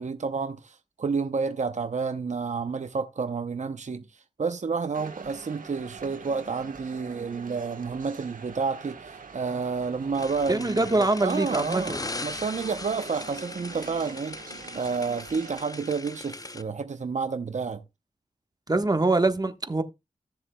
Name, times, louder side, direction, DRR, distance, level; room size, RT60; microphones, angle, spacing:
voice 1, 0.0-12.0 12.2-14.4 14.7-17.8, right 5 dB, 60° right, 0.7 m, -30 dB
sound 1, 4.9-15.6, right 5 dB, 85° right, 1.3 m, -45 dB
sound 2, 10.1-16.6, left 2 dB, 25° left, 0.8 m, -39 dB
voice 2, 10.5-12.0 18.7-19.8, right 2 dB, 30° right, 1.3 m, -24 dB
16.0 x 7.0 x 2.3 m
cardioid pair, 45°, 14 cm